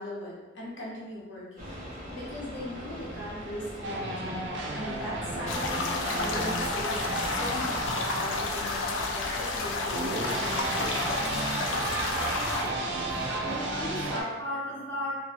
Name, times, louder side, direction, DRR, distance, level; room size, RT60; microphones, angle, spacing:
voice 1, 0.0-1.7 2.1-4.4 4.7-5.8 6.1-10.9, left 1 dB, 65° left, -6 dB, 0.8 m, -39 dB
sound 1, 1.6-14.1, equal, 45° right, 0.9 m, -43 dB
sound 2, 3.8-14.2, right 2 dB, 65° right, 0.4 m, -34 dB
sound 3, 5.5-12.7, left 3 dB, 80° left, 0.4 m, -31 dB
voice 2, 13.0-15.2, equal, 10° left, -10 dB, 1.0 m, -35 dB
2.9 x 2.5 x 2.7 m, 1.1 s
head